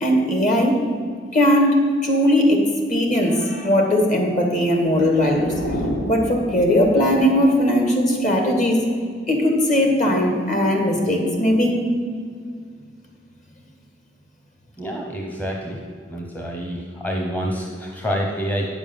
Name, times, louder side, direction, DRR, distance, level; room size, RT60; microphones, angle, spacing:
voice 1, 0.0-0.7 1.3-2.6 2.9-5.5 6.1-8.8 9.3-11.8, equal, 45° left, 2 dB, 2.0 m, -18 dB
sound 1, 4.7-7.3, equal, 90° left, 2.0 m, -30 dB
voice 2, 14.8-15.8 16.1-18.7, equal, 10° left, 0 dB, 0.9 m, -27 dB
9.2 x 7.2 x 7.1 m, 2.1 s
head